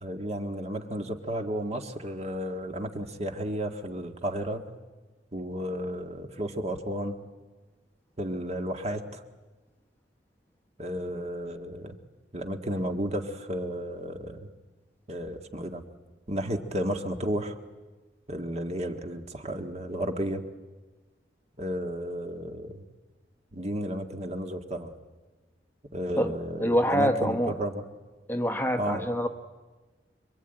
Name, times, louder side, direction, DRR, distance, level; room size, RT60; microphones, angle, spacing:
voice 1, 0.0-4.6 5.3-7.2 8.2-9.2 10.8-11.9 12.3-14.5 15.1-15.8 16.3-17.6 18.3-20.4 21.6-22.8 23.5-24.9 25.9-27.8 28.8-29.0, equal, 35° right, 5 dB, 1.7 m, -33 dB
voice 2, 26.6-27.5 28.3-29.3, equal, 10° left, 6 dB, 1.0 m, -25 dB
25.5 x 23.5 x 9.0 m, 1.3 s
head